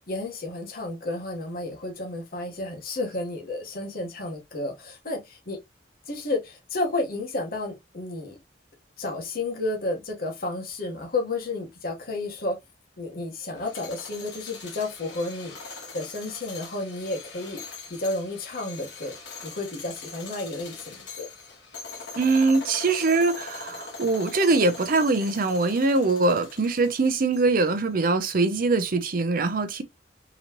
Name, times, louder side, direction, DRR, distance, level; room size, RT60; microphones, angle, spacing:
voice 1, 0.0-5.6 6.1-8.4 9.0-12.6 13.0-17.6 17.9-19.1 19.4-21.3, left 2 dB, 55° left, 1.2 m, -32 dB
sound 1, 13.6-27.7, left 4 dB, 85° left, 1.4 m, -42 dB
voice 2, 22.2-29.8, right 3 dB, 55° right, 0.6 m, -23 dB
3.9 x 3.0 x 2.9 m
head